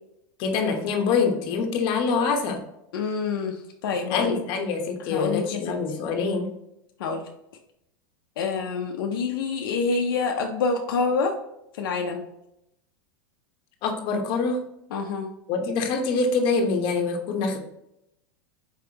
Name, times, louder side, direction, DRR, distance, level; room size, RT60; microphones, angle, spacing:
voice 1, 0.4-2.6 4.1-6.5 13.8-14.6 15.5-17.6, left 4 dB, 50° left, 3 dB, 0.9 m, -25 dB
voice 2, 2.9-4.4 5.1-5.8 7.0-7.3 8.4-11.3 11.8-12.2 14.9-15.3, left 4 dB, 80° left, 3 dB, 0.6 m, -27 dB
4.6 x 3.5 x 2.8 m, 0.84 s
supercardioid pair, 130°, 11 cm